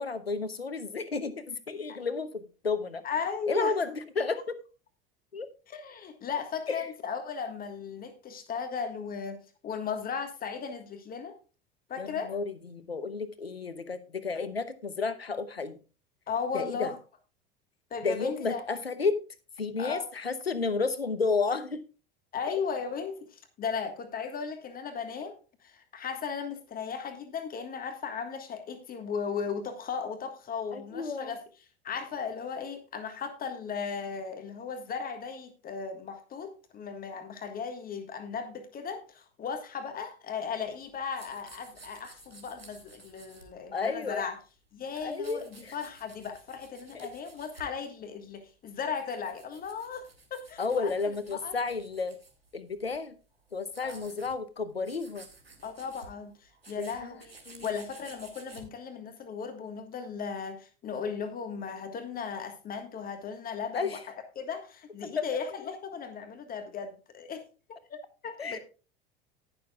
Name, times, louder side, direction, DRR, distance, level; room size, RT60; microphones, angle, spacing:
voice 1, 0.0-3.0 3.5-4.4 5.3-5.5 6.7-6.9 12.0-15.8 16.5-16.9 18.0-19.2 19.6-21.8 30.7-31.3 43.7-44.3 45.0-45.7 46.9-47.1 50.6-52.2 52.5-53.1 53.5-55.3 56.8-57.2 57.5-57.7 63.7-64.0 65.2-65.3 68.4-68.6, left 4 dB, 90° left, 12 dB, 1.0 m, -32 dB
voice 2, 3.0-3.7 5.7-11.4 11.9-12.4 16.3-17.0 17.9-18.6 19.8-20.1 22.3-25.3 25.6-31.4 31.8-44.4 44.7-50.9 51.3-51.5 53.8-54.1 55.6-57.3 57.6-64.0 64.4-67.4 67.7-68.0 68.2-68.6, left 6 dB, 30° left, 7 dB, 1.6 m, -36 dB
sound 1, 40.6-44.3 44.6-47.8 48.3-53.0 53.3-54.3 54.6-54.7 54.8-58.7, right 3 dB, 90° right, 2.1 m, -54 dB
19.5 x 6.7 x 2.3 m, 0.34 s
figure-of-eight pair, 80°, 29 cm